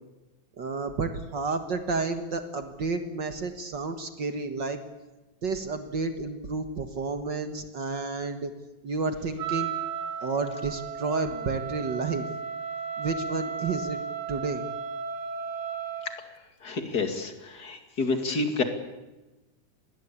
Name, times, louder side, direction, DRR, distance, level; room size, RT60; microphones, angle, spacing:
voice 1, 0.6-4.8 5.4-8.5 8.8-9.7 10.2-12.3 13.0-14.0 14.3-14.6, right 4 dB, 65° right, 8 dB, 1.1 m, -31 dB
Wind instrument woodwind instrument, 9.4-16.2, right 6 dB, 50° right, 2.5 m, -34 dB
voice 2, 16.6-18.6, left 3 dB, 30° left, 6 dB, 2.3 m, -29 dB
26.5 x 20.5 x 8.5 m, 1.1 s
omnidirectional pair, 4.3 m